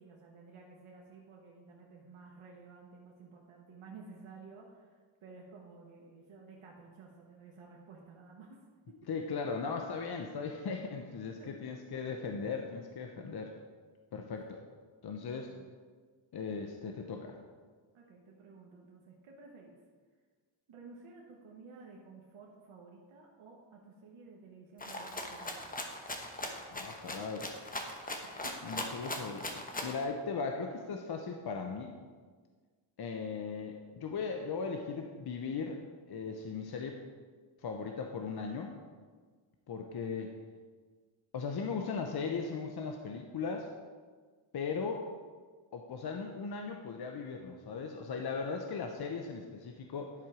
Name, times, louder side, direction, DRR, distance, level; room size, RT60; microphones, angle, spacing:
voice 1, 0.0-9.0 11.4-11.7 14.4-14.6 15.3-15.7 17.9-19.8 20.7-25.8 28.2-28.7, right 4 dB, 80° right, -1 dB, 1.1 m, -54 dB
voice 2, 9.1-13.5 14.1-14.6 15.0-15.5 16.3-17.4 26.7-27.5 28.6-29.5 29.8-32.0 33.0-35.8 36.1-37.0 37.6-38.7 39.7-40.3 41.3-43.7 44.5-45.0 45.7-50.1, left 5 dB, 50° left, 3 dB, 0.7 m, -38 dB
Rattle (instrument), 24.8-30.0, left 1 dB, 15° left, 0.9 m, -40 dB
11.0 x 4.4 x 4.9 m, 1.5 s
cardioid pair, 90°, 49 cm